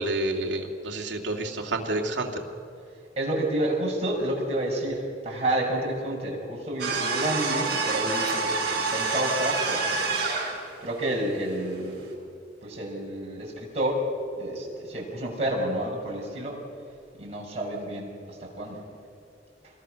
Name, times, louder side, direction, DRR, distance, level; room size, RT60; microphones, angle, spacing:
voice 1, 0.0-2.4, right 2 dB, 75° right, 1 dB, 2.5 m, -29 dB
voice 2, 3.2-10.2 10.8-11.9 12.6-14.0 14.4-16.6 17.2-18.8, right 1 dB, 35° right, -3 dB, 5.8 m, -29 dB
sound 1, 6.8-10.6, right 4 dB, 60° right, 7.1 m, -27 dB
26.5 x 21.0 x 6.4 m, 2.5 s
head